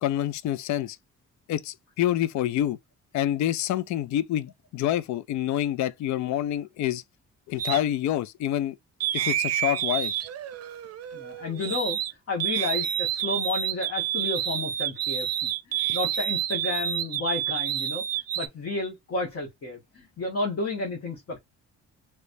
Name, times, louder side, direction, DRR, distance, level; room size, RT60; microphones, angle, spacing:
voice 1, 0.0-1.0 1.5-2.8 3.1-7.0 7.5-8.8 9.1-10.1, left 12 dB, 70° left, 0.4 m, -27 dB
sound 1, 7.6-7.8 9.0-12.1 12.4-18.5, right 11 dB, 55° right, 0.6 m, -29 dB
voice 2, 11.1-12.0 12.3-18.0 18.3-21.4, left 3 dB, 50° left, 1.4 m, -32 dB
3.3 x 3.1 x 2.6 m
cardioid pair, 90°, 30 cm